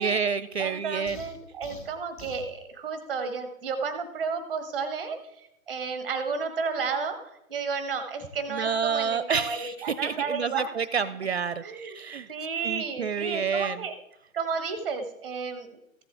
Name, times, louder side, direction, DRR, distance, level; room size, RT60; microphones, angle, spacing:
voice 1, 0.0-1.2 8.5-12.3 12.6-13.8, right 6 dB, 50° right, 16 dB, 0.4 m, -29 dB
voice 2, 0.6-10.7 11.6-12.0 12.3-13.9 14.3-16.0, right 5 dB, ahead, 9 dB, 0.7 m, -32 dB
sound 1, 1.1-2.5, left 4 dB, 35° left, 1.7 m, -45 dB
14.0 x 7.7 x 3.7 m, 0.83 s
figure-of-eight pair, 140°, 42 cm